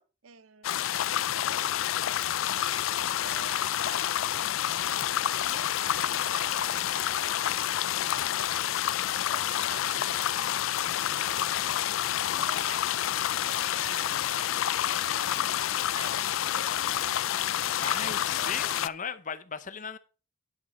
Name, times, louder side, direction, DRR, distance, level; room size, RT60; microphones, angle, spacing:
voice 1, 0.0-1.7 2.5-8.5 9.3-10.7 10.9-12.9 13.3-17.2 17.8-18.8, right 6 dB, 85° right, 0.7 m, -48 dB
sound 1, 0.6-18.9, left 11 dB, 75° left, 0.4 m, -28 dB
voice 2, 17.7-20.0, left 6 dB, 40° left, 0.8 m, -37 dB
10.5 x 7.5 x 4.2 m
head